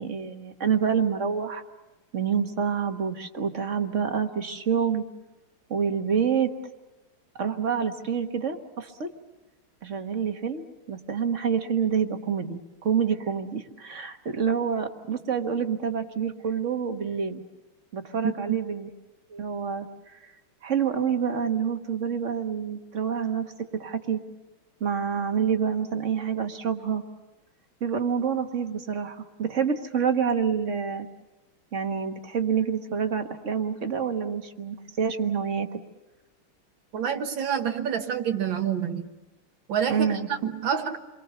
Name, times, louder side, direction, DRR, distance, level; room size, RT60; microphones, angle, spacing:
voice 1, 0.0-1.6 2.1-5.0 5.7-6.5 7.4-9.1 9.8-17.4 17.9-18.9 19.3-19.9 20.1-20.3 20.6-24.2 24.8-27.0 27.8-31.1 31.7-35.7 39.9-40.3, right 7 dB, 40° right, 6 dB, 1.4 m, -27 dB
voice 2, 36.9-39.0 39.7-41.0, right 8 dB, 65° right, 6 dB, 2.0 m, -27 dB
28.5 x 23.5 x 6.8 m, 1.1 s
omnidirectional pair, 2.4 m